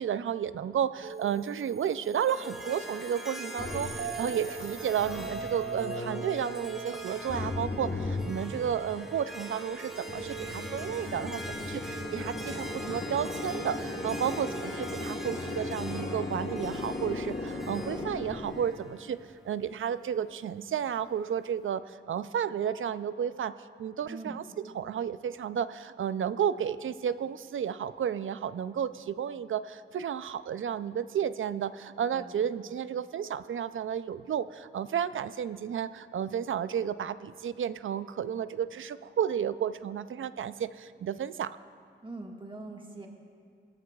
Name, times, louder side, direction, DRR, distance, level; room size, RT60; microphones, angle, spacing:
voice 1, 0.0-3.9 4.2-23.5 23.8-24.4 24.7-41.6, right 8 dB, 80° right, 14 dB, 0.4 m, -32 dB
sound 1, 1.0-14.9, right 6 dB, 55° right, 0.8 m, -43 dB
Harp, 2.3-19.5, equal, ahead, 2.3 m, -43 dB
sound 2, 3.6-6.6 7.3-9.0 10.1-18.6, left 2 dB, 35° left, 1.7 m, -37 dB
voice 2, 24.1-24.4 32.1-32.4 42.0-43.1, right 2 dB, 25° right, 0 dB, 1.6 m, -42 dB
22.0 x 14.0 x 2.4 m, 2.2 s
cardioid pair, 65°, 20 cm